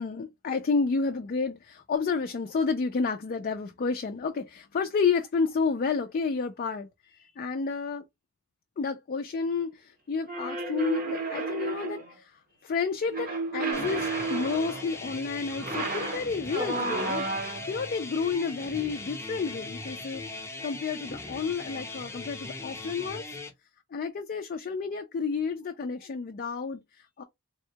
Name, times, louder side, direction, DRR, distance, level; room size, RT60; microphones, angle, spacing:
voice 1, 0.0-8.1 8.8-23.3 23.9-27.2, left 5 dB, 40° left, 0.3 m, -31 dB
sound 1, 10.3-12.1 13.1-14.9 15.5-17.8, right 3 dB, 40° right, 0.7 m, -32 dB
sound 2, 13.7-23.5, left 2 dB, 10° left, 0.6 m, -39 dB
3.5 x 2.2 x 2.7 m
head